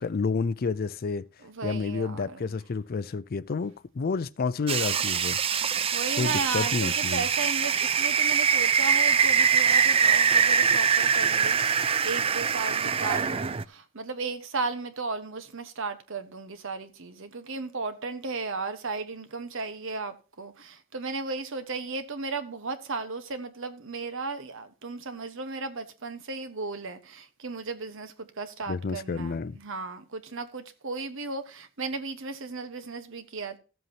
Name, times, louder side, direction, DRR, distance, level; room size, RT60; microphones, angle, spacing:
voice 1, 0.0-1.3 1.6-5.4 6.2-7.2 28.7-29.6, left 4 dB, 45° left, 0.4 m, -30 dB
voice 2, 1.4-2.6 5.6-33.6, right 3 dB, 65° right, 1.2 m, -35 dB
sound 1, 4.7-13.6, right 6 dB, 25° right, 0.4 m, -23 dB
14.5 x 7.9 x 2.8 m
head